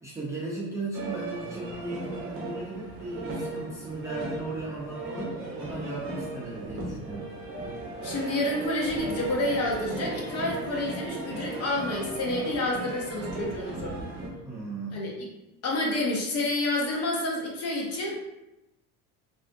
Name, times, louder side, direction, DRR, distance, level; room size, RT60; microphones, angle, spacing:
voice 1, 0.0-7.3 14.4-15.0, right 2 dB, 10° right, -7 dB, 0.5 m, -36 dB
sound 1, 0.9-14.3, right 2 dB, 35° right, 0.8 m, -36 dB
voice 2, 8.0-14.0 14.9-15.1 15.6-18.1, left 1 dB, 40° left, -2 dB, 0.8 m, -29 dB
3.3 x 2.6 x 2.6 m, 0.94 s
cardioid pair, 140°, 38 cm